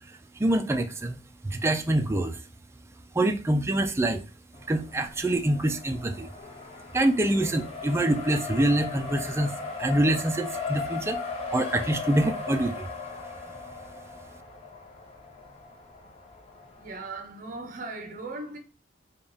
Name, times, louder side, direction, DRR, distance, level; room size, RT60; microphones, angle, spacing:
voice 1, 0.4-2.4 3.1-4.2 4.7-6.3 6.9-11.2 11.5-12.9, right 1 dB, 15° right, 0.4 m, -25 dB
Race car auto racing, 4.5-17.2, left 4 dB, 30° left, 0.8 m, -38 dB
voice 2, 16.8-18.6, right 3 dB, 45° right, 0.8 m, -38 dB
3.5 x 2.3 x 3.8 m
head